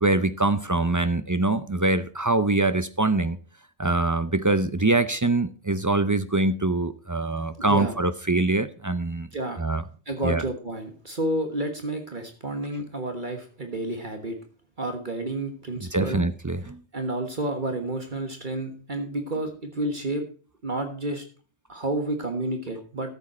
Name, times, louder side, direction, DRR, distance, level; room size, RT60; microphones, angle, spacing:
voice 1, 0.0-3.4 3.8-9.3 9.6-9.8 10.2-10.4 15.8-16.8, right 2 dB, 25° right, 0.4 m, -24 dB
voice 2, 7.6-8.0 9.3-9.6 10.1-14.4 14.8-16.2 16.9-20.2 20.6-21.2 21.7-23.1, right 1 dB, 45° right, 1.5 m, -30 dB
13.5 x 7.4 x 4.3 m
omnidirectional pair, 1.2 m